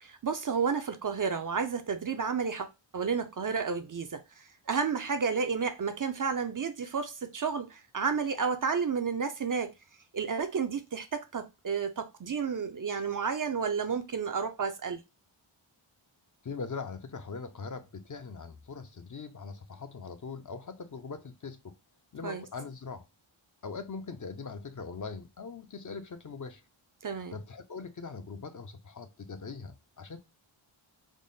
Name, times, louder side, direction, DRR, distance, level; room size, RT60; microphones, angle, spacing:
voice 1, 0.0-9.7 10.1-15.0 22.2-22.4 27.0-27.4, right 5 dB, 40° right, 0.5 m, -31 dB
voice 2, 16.4-21.8 22.1-23.0 23.6-26.6 27.3-30.2, left 4 dB, 40° left, 0.6 m, -41 dB
3.7 x 2.0 x 3.8 m
wide cardioid pair, 75°, 50 cm